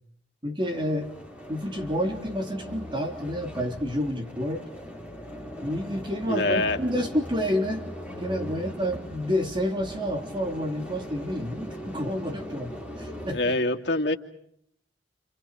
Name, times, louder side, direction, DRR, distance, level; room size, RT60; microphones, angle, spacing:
voice 1, 0.4-1.2 1.5-4.6 5.6-7.9 8.2-12.7 13.0-13.5, equal, 25° right, 3 dB, 3.5 m, -29 dB
sound 1, 0.6-13.3, equal, 5° right, 7.6 m, -40 dB
voice 2, 6.3-6.8 13.3-14.1, left 2 dB, 70° left, 3 dB, 2.7 m, -24 dB
29.5 x 29.5 x 5.0 m, 0.72 s
head